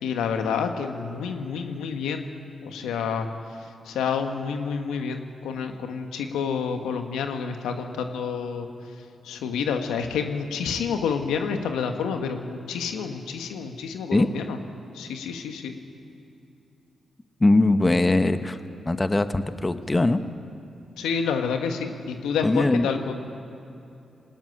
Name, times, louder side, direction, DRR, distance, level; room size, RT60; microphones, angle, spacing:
voice 1, 0.0-2.3 2.6-3.3 3.8-8.7 9.2-14.6 14.9-15.7 21.0-23.3, left 6 dB, 85° left, 5 dB, 1.5 m, -29 dB
voice 2, 17.4-18.6 18.9-20.2 22.4-22.9, left 2 dB, 25° left, 10 dB, 1.2 m, -21 dB
19.5 x 18.5 x 9.9 m, 2.8 s
supercardioid pair, 45°, 0 cm